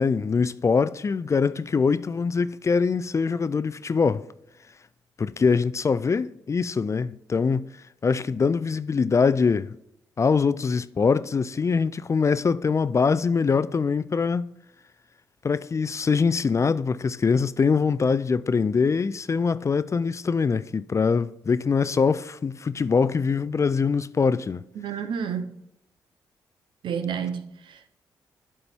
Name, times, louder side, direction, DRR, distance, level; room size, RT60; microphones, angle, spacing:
voice 1, 0.0-4.2 5.2-7.7 8.0-9.7 10.2-14.5 15.4-24.6, left 5 dB, 35° left, 0.4 m, -23 dB
voice 2, 24.7-25.5 26.8-27.9, right 7 dB, 70° right, 0.7 m, -30 dB
11.5 x 4.3 x 3.5 m
hypercardioid pair, 45°, 9 cm